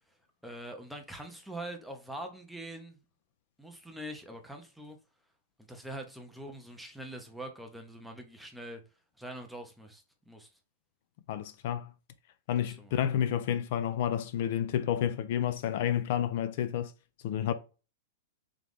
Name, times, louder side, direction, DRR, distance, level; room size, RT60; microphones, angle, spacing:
voice 1, 0.4-3.0 3.6-5.0 5.7-8.8 9.2-10.5 12.6-13.0, right 1 dB, ahead, 0.6 m, -43 dB
voice 2, 11.3-11.9 12.5-16.9 17.2-17.5, left 10 dB, 50° left, 0.4 m, -30 dB
3.7 x 3.0 x 3.5 m
supercardioid pair, 165°, 0 cm